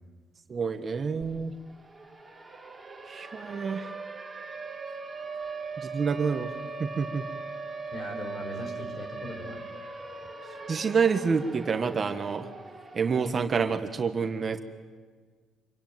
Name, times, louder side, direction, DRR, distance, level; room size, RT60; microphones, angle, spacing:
voice 1, 0.5-1.5 3.1-3.9 5.8-6.5 6.8-7.2 10.7-12.5 12.9-14.6, right 5 dB, 35° right, 7 dB, 1.4 m, -28 dB
Siren, 1.2-1.3 1.6-13.6, right 4 dB, 5° right, 3.9 m, -40 dB
voice 2, 7.9-9.6, left 1 dB, 40° left, 4 dB, 6.6 m, -39 dB
27.0 x 23.5 x 9.4 m, 1.6 s
cardioid pair, 130°, 0 cm